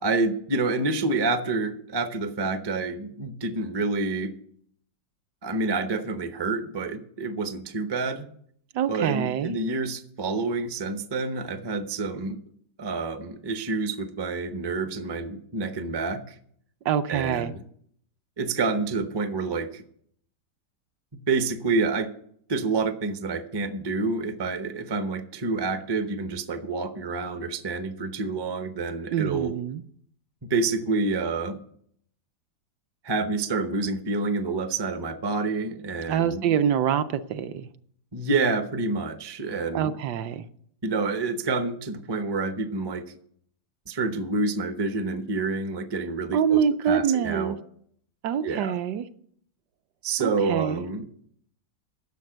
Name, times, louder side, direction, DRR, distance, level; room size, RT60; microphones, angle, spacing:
voice 1, 0.0-4.3 5.4-8.3 8.9-12.4 12.8-16.3 17.1-17.6 18.4-19.8 21.3-22.1 22.5-29.5 30.4-31.6 33.0-36.4 38.1-40.0 40.8-43.0 43.9-47.6 48.4-48.8 50.0-51.1, right 3 dB, 40° right, 0.3 m, -28 dB
voice 2, 8.7-9.5 16.8-17.5 29.1-29.8 36.1-37.7 39.7-40.4 46.3-47.6 48.2-49.0 50.2-50.8, right 8 dB, 70° right, 1.1 m, -25 dB
10.5 x 6.7 x 7.8 m
omnidirectional pair, 2.0 m